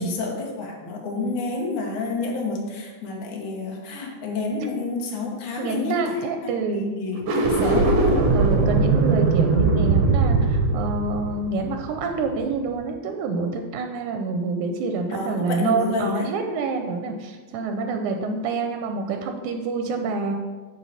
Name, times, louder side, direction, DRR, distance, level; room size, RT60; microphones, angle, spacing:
voice 1, 0.0-6.2 6.4-8.2 15.1-16.4, left 3 dB, 75° left, 0 dB, 2.5 m, -29 dB
voice 2, 5.6-6.9 7.6-7.9 8.3-20.3, right 3 dB, 85° right, 5 dB, 2.1 m, -27 dB
sound 1, 7.1-12.4, right 3 dB, 70° right, 1.6 m, -20 dB
10.0 x 4.3 x 4.1 m, 1.3 s
omnidirectional pair, 3.5 m